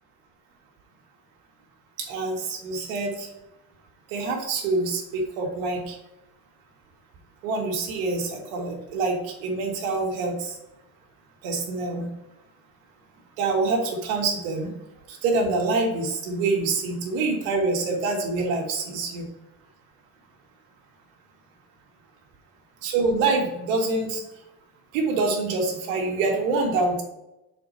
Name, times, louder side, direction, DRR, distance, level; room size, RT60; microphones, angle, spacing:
voice 1, 2.0-3.3 4.1-6.0 7.4-10.5 11.4-12.1 13.4-14.7 15.1-19.2 22.8-24.2 24.9-27.0, right 3 dB, 80° right, 0 dB, 1.8 m, -26 dB
5.9 x 4.4 x 4.0 m, 0.94 s
cardioid pair, 170°, 40 cm